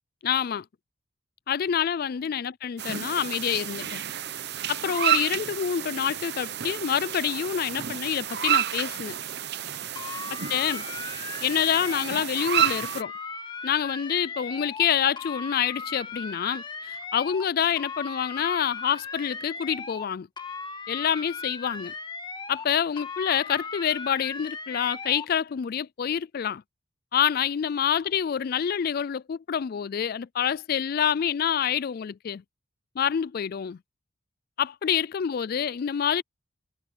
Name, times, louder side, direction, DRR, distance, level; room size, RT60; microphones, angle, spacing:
voice 1, 0.2-0.6 1.5-4.0 4.7-9.2 10.3-13.1 13.6-20.3 20.9-21.9 22.5-26.6 27.1-32.4 33.0-33.8 34.6-36.2, left 8 dB, 45° left, 0.3 m, -27 dB
sound 1, 2.8-13.0, right 10 dB, 55° right, 0.9 m, -30 dB
sound 2, 10.0-12.3 12.6-14.9 15.2-17.5 17.8-20.1 20.4-22.7 23.0-25.3, left 4 dB, 20° left, 1.5 m, -38 dB
head